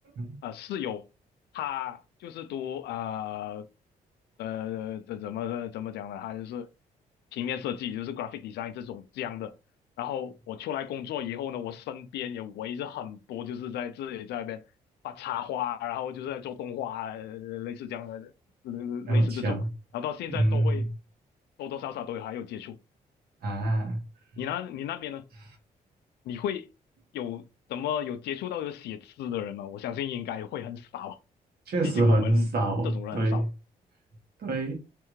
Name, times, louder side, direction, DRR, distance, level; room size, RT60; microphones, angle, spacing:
voice 1, 0.4-1.1 1.5-3.7 4.4-6.7 7.3-9.5 10.0-14.6 15.0-18.3 18.6-19.6 19.9-20.9 21.6-22.8 24.4-25.2 26.2-26.7 27.1-27.4 27.7-31.2 31.8-32.5 32.8-33.5, left 10 dB, 80° left, 0.5 m, -34 dB
voice 2, 19.1-19.7 20.3-20.9 23.4-24.0 31.7-33.5 34.4-34.7, right 1 dB, 70° right, 1.8 m, -25 dB
3.4 x 3.3 x 3.2 m
supercardioid pair, 55°, 17 cm